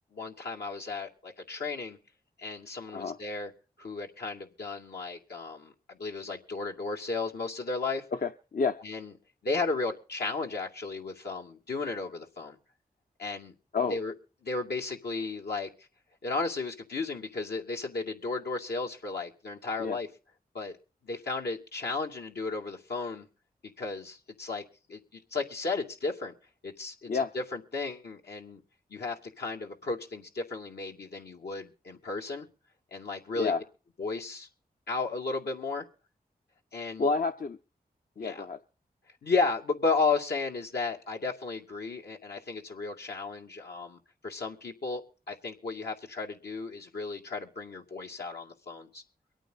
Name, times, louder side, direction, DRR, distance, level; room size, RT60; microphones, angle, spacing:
voice 1, 0.1-2.0 2.4-3.5 3.8-8.0 8.8-9.1 9.4-12.6 13.2-13.5 13.9-14.1 14.4-15.7 16.2-20.1 20.5-20.8 21.0-23.3 23.6-24.6 24.9-26.3 26.6-28.6 28.9-32.5 32.9-33.5 34.0-34.5 34.9-35.9 36.7-37.1 38.2-38.4 39.2-45.0 45.3-49.0, left 3 dB, 80° left, 1 dB, 2.5 m, -34 dB
voice 2, 8.2-8.8 13.7-14.0 19.8-20.0 27.1-27.3 33.4-33.6 37.0-37.6 38.2-38.6, left 4 dB, 55° left, 8 dB, 0.8 m, -29 dB
24.5 x 9.1 x 4.0 m, 0.35 s
cardioid pair, 45°, 17 cm